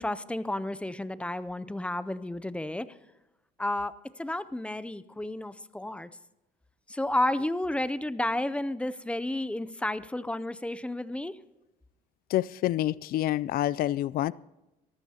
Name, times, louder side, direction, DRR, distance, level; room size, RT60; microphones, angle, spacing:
voice 1, 0.0-2.9 3.6-6.1 6.9-11.4, left 1 dB, 5° left, 15 dB, 0.5 m, -31 dB
voice 2, 12.3-14.3, left 13 dB, 60° left, 22 dB, 0.4 m, -27 dB
23.0 x 14.5 x 2.9 m, 0.96 s
cardioid pair, 110°, 17 cm